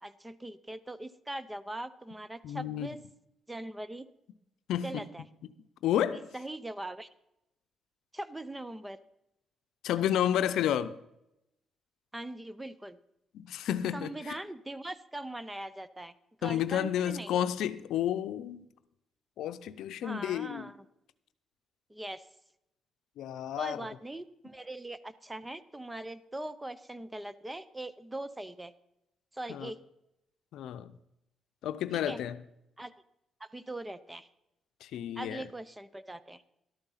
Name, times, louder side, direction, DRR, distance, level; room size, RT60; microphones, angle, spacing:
voice 1, 0.0-3.0 3.5-4.1 4.8-5.2 5.9-7.1 8.1-9.0 12.1-13.0 13.9-16.1 16.4-17.3 20.0-20.8 21.9-22.3 23.6-28.7 29.3-29.8 32.1-32.2 32.8-32.9 33.4-34.3 35.2-36.4, right 1 dB, 10° right, 0.6 m, -41 dB
voice 2, 2.4-2.9 4.7-5.0 5.8-6.3 9.8-11.0 13.3-14.3 16.4-18.7 19.4-20.7 23.2-23.9 29.5-29.7 30.5-30.9 31.6-32.4 34.8-35.4, left 10 dB, 80° left, 0.6 m, -31 dB
12.0 x 8.8 x 5.6 m
cardioid pair, 90°, 0 cm